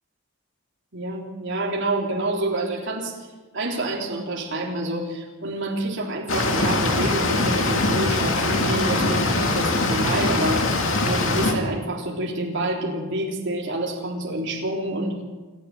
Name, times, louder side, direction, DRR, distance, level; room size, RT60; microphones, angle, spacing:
voice 1, 0.9-3.1 3.5-10.7 11.1-15.2, right 1 dB, 60° right, -2 dB, 3.6 m, -27 dB
sound 1, 6.3-11.5, left 2 dB, 65° left, 2.6 m, -22 dB
29.0 x 11.5 x 7.8 m, 1.3 s
head